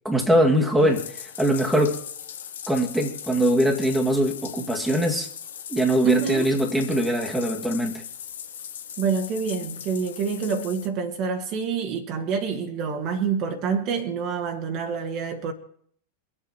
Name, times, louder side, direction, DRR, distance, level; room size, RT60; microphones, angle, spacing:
voice 1, 0.0-2.0 2.7-5.3 5.7-8.0, right 1 dB, 5° right, 2.1 m, -22 dB
Bathtub (filling or washing), 0.8-10.9, left 9 dB, 60° left, 1.0 m, -39 dB
voice 2, 6.0-6.5 9.0-15.5, right 5 dB, 40° right, 1.8 m, -27 dB
24.5 x 8.2 x 4.5 m
figure-of-eight pair, 90°, 0 cm